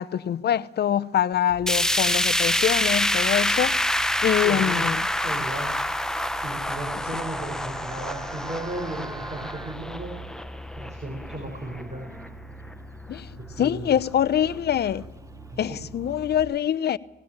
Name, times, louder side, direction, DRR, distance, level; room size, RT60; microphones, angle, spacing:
voice 1, 0.0-3.7 4.2-5.0 13.1-13.2 13.6-15.0 15.6-17.0, left 10 dB, 55° left, 0.8 m, -24 dB
Livestock farm animals working animals, 1.5-16.4, right 3 dB, 15° right, 1.3 m, -42 dB
sound 1, 1.7-11.8 12.2-12.3 12.7-12.8 13.6-13.7, left 1 dB, 5° left, 0.9 m, -26 dB
voice 2, 4.4-4.9 5.2-5.8 6.4-10.1 10.8-12.1 13.4-13.9 15.5-15.8, right 1 dB, 35° right, 5.5 m, -35 dB
19.0 x 16.5 x 8.9 m
cardioid pair, 90°, 20 cm